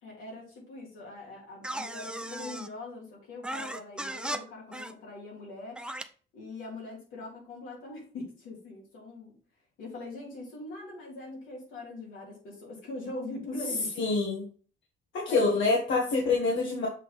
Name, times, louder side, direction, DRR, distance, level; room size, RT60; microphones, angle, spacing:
voice 1, 0.0-5.8 6.3-9.4 9.8-14.0 15.3-15.6, left 2 dB, 90° left, -4 dB, 3.6 m, -42 dB
sound 1, 1.6-2.7 3.4-4.4 4.7-4.9 5.8-6.0, right 1 dB, 5° right, 0.5 m, -36 dB
voice 2, 14.0-14.5 15.1-16.9, left 3 dB, 70° left, -3 dB, 1.7 m, -26 dB
7.4 x 3.5 x 4.2 m, 0.40 s
cardioid pair, 90°, 20 cm